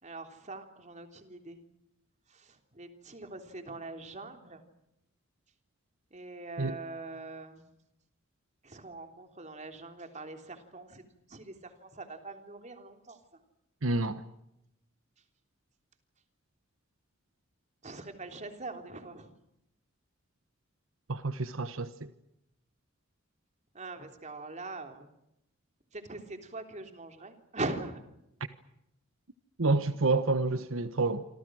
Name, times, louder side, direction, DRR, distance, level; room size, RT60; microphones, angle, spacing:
voice 1, 0.0-1.6 2.3-4.6 6.1-7.6 8.6-13.2 17.8-19.3 23.7-25.1 25.9-28.0, right 2 dB, 35° right, 3.4 m, -42 dB
voice 2, 13.8-14.2 21.1-22.1 29.6-31.3, right 3 dB, 80° right, 1.3 m, -28 dB
28.0 x 26.0 x 6.4 m
head